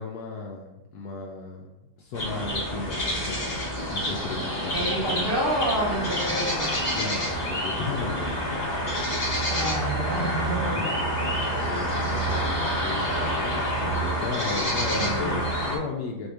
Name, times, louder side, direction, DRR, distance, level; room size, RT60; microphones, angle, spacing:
voice 1, 0.0-5.3 6.9-8.6 10.0-10.9 11.5-13.0 13.8-16.3, left 4 dB, 75° left, 0 dB, 1.0 m, -35 dB
sound 1, 2.1-15.8, equal, 30° left, 1.0 m, -27 dB
voice 2, 4.7-6.9 9.5-11.0 14.9-15.4, right 1 dB, 45° right, -3 dB, 1.1 m, -29 dB
4.2 x 2.7 x 4.6 m, 0.92 s
omnidirectional pair, 1.8 m